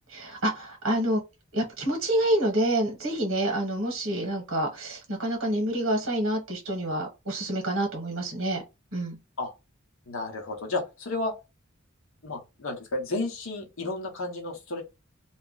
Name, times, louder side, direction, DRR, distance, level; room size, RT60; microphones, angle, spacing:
voice 1, 0.1-1.2 1.5-8.6 8.9-9.2, right 1 dB, 70° right, 1.1 m, -27 dB
voice 2, 10.1-11.3 12.2-14.8, left 2 dB, 70° left, 0.9 m, -32 dB
2.4 x 2.2 x 3.7 m
head